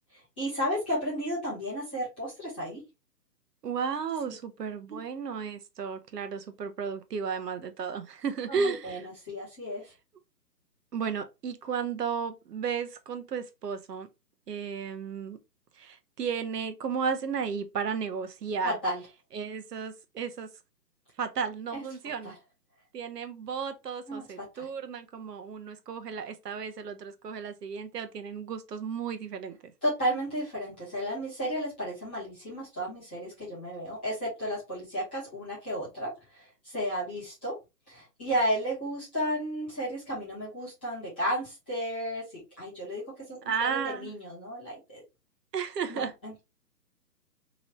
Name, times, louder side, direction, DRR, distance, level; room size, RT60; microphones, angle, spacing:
voice 1, 0.1-2.8 4.3-4.4 4.9-5.0 8.5-9.9 18.6-19.0 21.7-21.8 22.2-22.3 24.1-24.2 24.5-24.7 29.8-37.5 37.9-43.0 43.4-45.0 45.9-46.4, equal, 5° left, 0.6 m, -33 dB
voice 2, 3.6-9.0 10.9-14.1 14.5-15.4 15.8-18.7 19.3-20.5 21.2-22.4 22.9-29.7 43.4-44.1 45.5-46.1, right 6 dB, 75° right, 0.7 m, -34 dB
3.0 x 2.5 x 3.0 m
hypercardioid pair, 150°, 49 cm